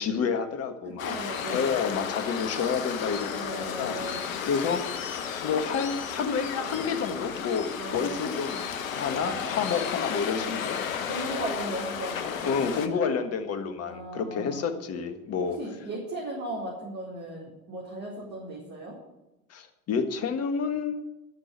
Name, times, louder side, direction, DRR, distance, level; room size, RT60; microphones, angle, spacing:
voice 1, 0.0-4.0 4.4-5.1 5.4-10.8 12.4-15.6 19.5-20.9, left 6 dB, 35° left, 8 dB, 1.5 m, -29 dB
Waves surf, 1.0-12.9, left 7 dB, 70° left, 1.2 m, -33 dB
voice 2, 1.0-1.7 3.3-4.3 7.8-8.2 9.2-9.4 10.4-10.6 11.0-13.2 13.8-14.7 15.4-19.0, right 1 dB, 40° right, -5 dB, 4.2 m, -37 dB
13.5 x 6.2 x 8.0 m, 0.96 s
figure-of-eight pair, 80°, 42 cm